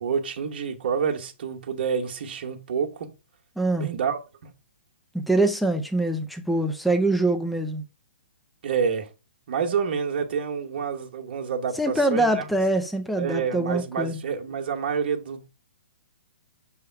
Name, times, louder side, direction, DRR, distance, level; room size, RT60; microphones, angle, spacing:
voice 1, 0.0-3.1 3.8-4.2 8.6-9.1 9.5-12.5 13.2-15.5, right 6 dB, 50° right, 1.3 m, -28 dB
voice 2, 3.6-3.9 5.3-7.8 11.8-14.2, right 2 dB, ahead, 0.4 m, -24 dB
6.7 x 3.4 x 4.6 m
hypercardioid pair, 165°, 6 cm